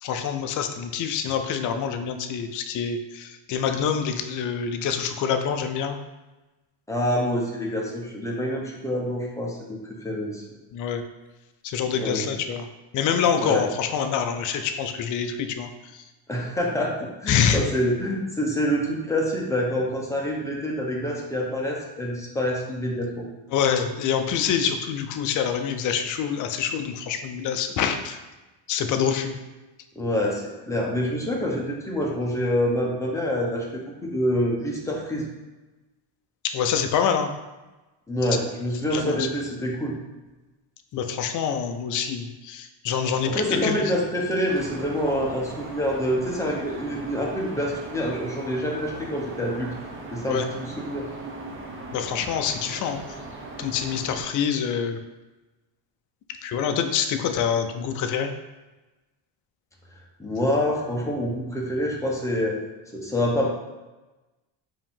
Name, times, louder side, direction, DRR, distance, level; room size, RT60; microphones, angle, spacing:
voice 1, 0.0-6.0 10.7-11.0 11.6-12.7 12.9-16.0 17.3-17.6 23.5-28.2 28.7-29.3 36.5-37.3 38.9-39.2 40.9-43.8 50.3-50.4 51.9-53.0 53.6-55.0 56.4-58.3, left 7 dB, 40° left, 6 dB, 0.4 m, -26 dB
voice 2, 6.9-10.4 11.9-12.3 13.4-13.7 16.3-23.2 30.0-35.3 38.1-39.9 43.3-49.7 50.1-51.1 60.2-62.6 62.9-63.5, equal, 5° left, -3 dB, 0.8 m, -26 dB
sound 1, 44.5-54.2, right 2 dB, 25° right, 0.6 m, -39 dB
4.7 x 2.8 x 3.6 m, 1.1 s
cardioid pair, 125°, 49 cm